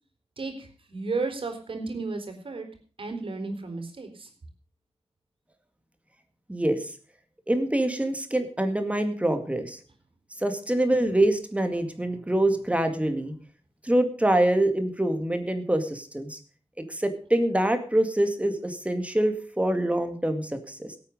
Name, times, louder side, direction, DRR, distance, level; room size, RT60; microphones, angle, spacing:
voice 1, 0.4-2.7 3.0-4.3, right 3 dB, 60° right, 6 dB, 3.8 m, -33 dB
voice 2, 6.5-6.9 7.5-9.8 10.4-13.3 13.8-16.4 16.9-21.0, right 1 dB, 15° right, 7 dB, 2.1 m, -25 dB
17.5 x 8.8 x 5.3 m, 0.40 s
wide cardioid pair, 85°, 10 cm